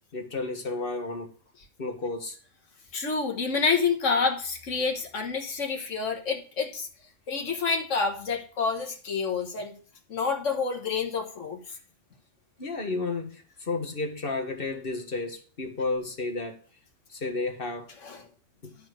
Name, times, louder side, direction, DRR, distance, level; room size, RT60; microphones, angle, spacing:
voice 1, 0.1-1.3 1.8-2.4 12.6-16.5 17.1-17.9 18.6-18.7, left 3 dB, 50° left, 1.8 m, -32 dB
voice 2, 2.9-6.9 7.3-9.7 10.1-11.6 18.0-18.2, left 5 dB, 85° left, 1.8 m, -28 dB
11.5 x 4.4 x 6.2 m
omnidirectional pair, 1.2 m